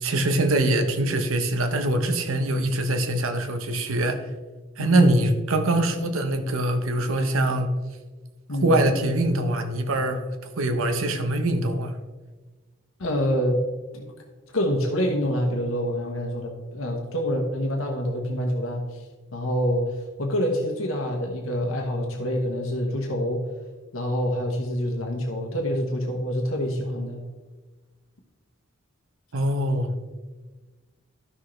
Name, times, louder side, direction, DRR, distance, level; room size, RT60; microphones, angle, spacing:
voice 1, 0.0-4.3 4.8-7.7 8.6-10.2 10.6-11.9 29.3-29.9, right 1 dB, 85° right, 7 dB, 0.9 m, -23 dB
voice 2, 4.8-5.1 8.5-8.8 13.0-13.6 13.9-14.1 14.5-19.0 19.3-23.4 23.9-27.2, equal, 90° left, 1 dB, 1.2 m, -26 dB
12.0 x 6.3 x 3.2 m, 1.3 s
head